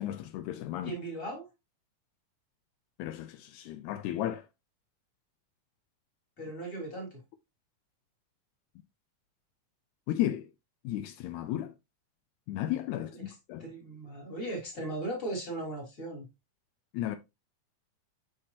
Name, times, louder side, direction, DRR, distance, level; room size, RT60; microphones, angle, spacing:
voice 1, 0.0-1.0 3.0-4.5 10.1-10.5 10.8-11.7 12.5-13.7 16.9-17.2, left 13 dB, 80° left, 1.9 m, -34 dB
voice 2, 0.8-1.5 6.4-7.2 13.1-13.3 13.6-16.3, right 1 dB, 20° left, 2.3 m, -38 dB
6.4 x 5.7 x 2.8 m
omnidirectional pair, 3.4 m